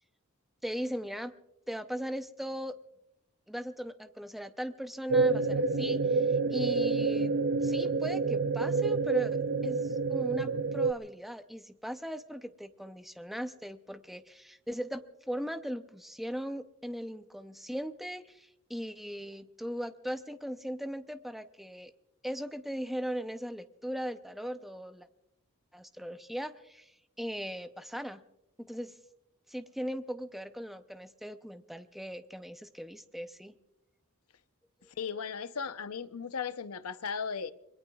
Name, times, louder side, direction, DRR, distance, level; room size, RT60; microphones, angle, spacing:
voice 1, 0.6-1.3 1.7-2.8 3.5-7.3 7.6-21.9 22.2-25.1 25.7-28.2 28.6-29.0 29.5-33.6, equal, ahead, 0.6 m, -39 dB
sound 1, 5.1-10.9, right 4 dB, 55° right, 0.5 m, -28 dB
voice 2, 35.0-37.5, left 6 dB, 80° left, 0.7 m, -36 dB
26.5 x 22.0 x 2.3 m
head